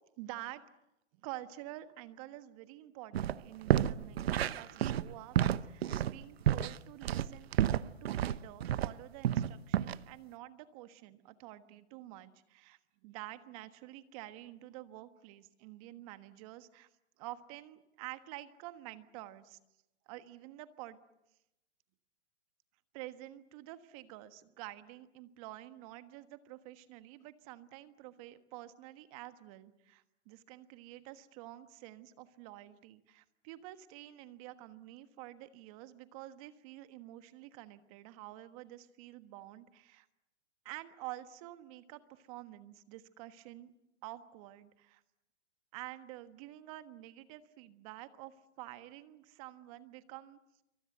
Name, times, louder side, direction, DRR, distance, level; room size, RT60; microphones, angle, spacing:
voice 1, 0.2-0.6 1.2-5.4 5.6-7.5 8.0-16.9 17.2-19.6 20.1-21.0 22.9-40.1 40.6-43.7 44.0-45.0 45.7-50.6, right 15 dB, 30° right, 11 dB, 1.4 m, -49 dB
sound 1, 3.1-3.3 3.7-8.9 9.2-10.0, right 11 dB, 55° right, 0.9 m, -30 dB
27.0 x 24.0 x 8.0 m, 0.91 s
hypercardioid pair, 140°, 36 cm